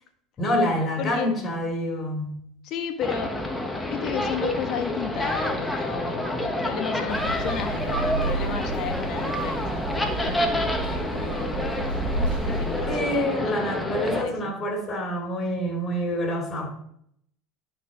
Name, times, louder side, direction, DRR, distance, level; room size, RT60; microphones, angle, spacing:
voice 1, 0.4-2.4 12.9-16.7, equal, 30° left, 1 dB, 2.7 m, -27 dB
voice 2, 1.0-1.3 2.6-3.3 3.9-11.9 12.4-13.6 14.0-14.5, left 7 dB, 55° left, 5 dB, 1.4 m, -33 dB
sound 1, 3.0-14.2, left 1 dB, 10° left, 1.3 m, -28 dB
sound 2, 7.1-13.3, right 3 dB, 65° right, 2.3 m, -31 dB
11.5 x 4.3 x 3.9 m, 0.69 s
hypercardioid pair, 85°, 0 cm